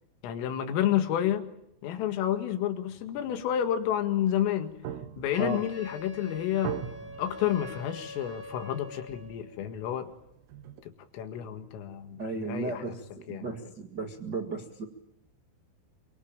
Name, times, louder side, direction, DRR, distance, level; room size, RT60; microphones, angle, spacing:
voice 1, 0.2-1.5 1.8-4.8 5.2-6.8 7.2-10.1 10.8-12.8 13.3-13.4, left 10 dB, 80° left, 7 dB, 4.5 m, -30 dB
sound 1, 2.9-10.8, right 9 dB, 90° right, 4.3 m, -43 dB
Wind instrument woodwind instrument, 5.3-9.5, left 2 dB, 30° right, 1.8 m, -44 dB
voice 2, 12.2-14.8, right 3 dB, 65° right, 4 dB, 1.0 m, -35 dB
25.5 x 24.0 x 9.0 m, 0.80 s
omnidirectional pair, 5.8 m